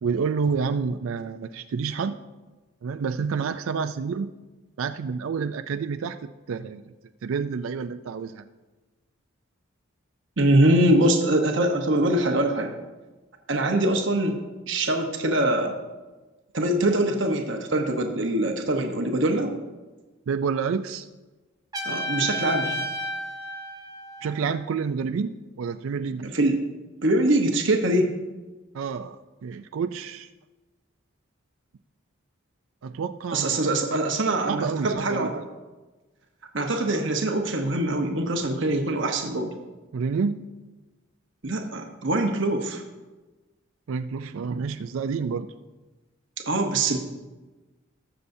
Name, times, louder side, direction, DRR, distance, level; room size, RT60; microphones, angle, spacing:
voice 1, 0.0-2.2 2.8-4.3 4.8-6.2 6.5-6.8 7.2-8.4 20.3-21.1 24.2-26.3 28.7-30.3 32.8-33.7 34.5-35.3 39.9-40.5 43.9-45.5, right 5 dB, 75° right, 8 dB, 0.4 m, -29 dB
voice 2, 10.4-12.7 13.5-14.4 14.7-15.7 16.5-19.5 21.8-22.8 26.2-26.6 27.0-28.1 33.3-35.3 36.5-39.5 41.4-42.8 46.5-47.0, right 1 dB, 60° right, 3 dB, 1.0 m, -23 dB
Trumpet, 21.7-24.6, left 1 dB, 20° right, 1.0 m, -32 dB
19.5 x 6.9 x 2.7 m, 1.2 s
head